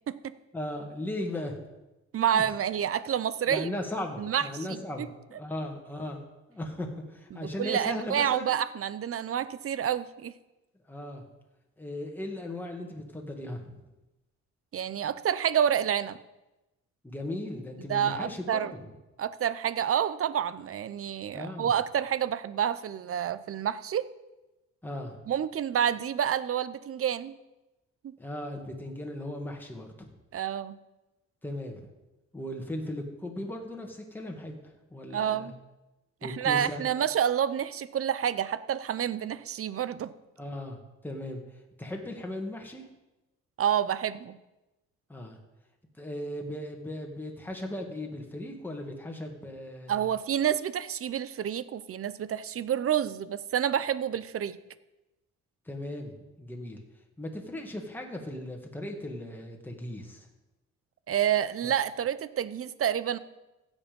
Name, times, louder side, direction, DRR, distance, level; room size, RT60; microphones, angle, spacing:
voice 1, 0.5-1.6 2.3-2.5 3.5-8.6 10.9-11.2 11.8-13.7 17.0-18.7 21.3-21.7 24.8-25.2 28.2-30.1 31.4-31.9 32.3-34.6 34.9-35.5 36.2-36.8 40.4-42.9 45.1-45.4 46.0-50.1 55.7-56.1 56.4-56.8 57.2-60.3, left 1 dB, 5° left, 1 dB, 2.1 m, -37 dB
voice 2, 2.1-3.7 4.2-5.1 7.3-10.3 14.7-16.2 17.9-18.7 19.2-24.1 25.3-27.4 28.0-28.1 30.3-30.8 35.1-35.5 36.2-40.1 43.6-44.4 49.9-54.6 61.1-63.2, right 9 dB, 50° right, 16 dB, 0.7 m, -29 dB
15.5 x 7.2 x 5.3 m, 1.0 s
cardioid pair, 90°, 30 cm